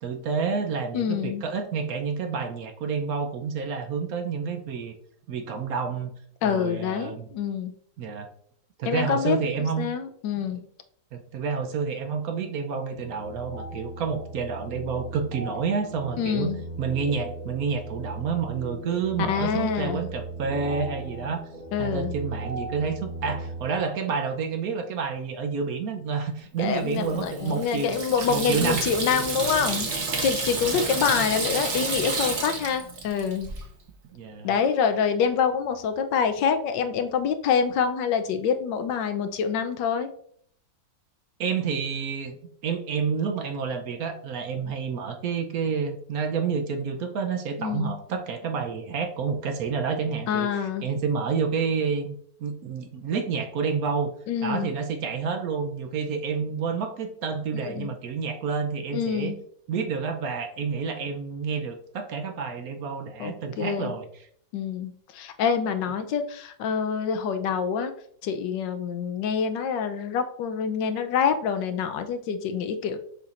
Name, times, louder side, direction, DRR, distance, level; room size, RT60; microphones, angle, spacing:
voice 1, 0.0-4.9 5.3-6.1 6.4-7.3 8.0-8.3 8.8-9.9 11.1-16.5 16.8-21.4 21.8-28.0 28.3-28.8 30.7-31.2 34.1-34.6 41.4-42.4 42.6-54.1 54.4-59.3 59.7-64.2, right 5 dB, 65° right, 5 dB, 1.1 m, -29 dB
voice 2, 0.9-1.4 6.4-7.7 8.8-9.4 9.8-10.7 16.2-16.6 19.3-20.0 21.7-22.2 26.6-29.9 30.2-33.5 34.4-40.1 47.6-47.9 50.3-50.9 54.3-54.7 57.5-57.9 58.9-59.4 63.2-63.9 64.5-67.9 68.2-73.0, left 6 dB, 85° left, 8 dB, 1.4 m, -26 dB
sound 1, 13.0-23.7, right 2 dB, 25° right, 1.5 m, -38 dB
Water tap faucet / Sink (filling or washing), 26.9-33.6, right 3 dB, 45° right, 1.3 m, -30 dB
6.9 x 5.8 x 2.5 m, 0.63 s
omnidirectional pair, 1.9 m